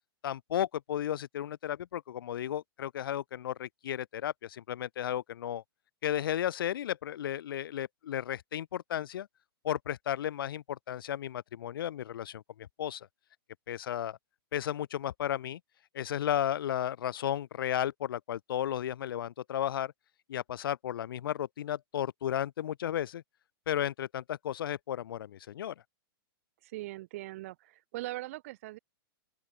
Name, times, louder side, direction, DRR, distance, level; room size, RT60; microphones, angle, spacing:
voice 1, 0.2-5.6 6.0-9.3 9.6-13.1 13.7-14.2 14.5-15.6 15.9-19.9 20.3-23.2 23.7-25.7, left 11 dB, 65° left, 1.2 m, -34 dB
voice 2, 26.6-28.8, right 18 dB, 35° right, 1.0 m, -40 dB
open air
hypercardioid pair, 175°, 13 cm